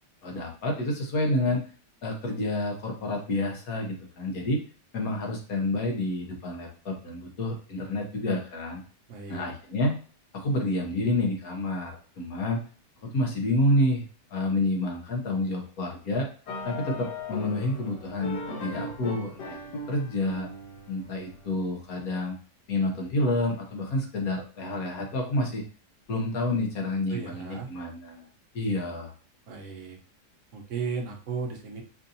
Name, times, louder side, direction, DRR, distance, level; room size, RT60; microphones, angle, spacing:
voice 1, 0.2-1.6 2.0-4.6 4.9-8.8 9.3-10.0 10.3-12.6 13.0-14.0 14.3-16.3 16.6-19.6 19.9-20.5 20.9-22.4 22.7-25.6 26.1-28.3 28.5-29.1, left 1 dB, 60° left, 1 dB, 1.4 m, -29 dB
voice 2, 9.1-9.5 27.1-27.7 29.5-30.0 30.5-31.8, right 5 dB, 55° right, 1 dB, 1.1 m, -35 dB
sound 1, 16.5-21.7, left 2 dB, 80° left, 1.8 m, -38 dB
5.2 x 2.7 x 2.7 m, 0.39 s
omnidirectional pair, 1.8 m